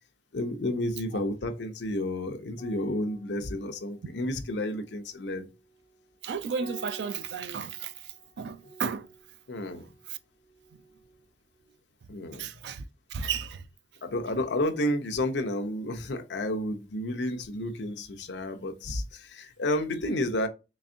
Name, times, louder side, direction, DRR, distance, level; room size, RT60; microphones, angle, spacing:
voice 1, 0.3-5.5 9.5-9.9 12.1-12.5 14.0-20.5, left 1 dB, 75° left, 0.6 m, -31 dB
sound 1, 2.5-11.3 11.5-11.8, right 1 dB, 35° left, 1.2 m, -52 dB
voice 2, 6.2-9.1 10.1-10.2 12.3-12.8 13.1-13.7, right 6 dB, 70° right, 0.4 m, -34 dB
3.9 x 3.4 x 2.5 m
head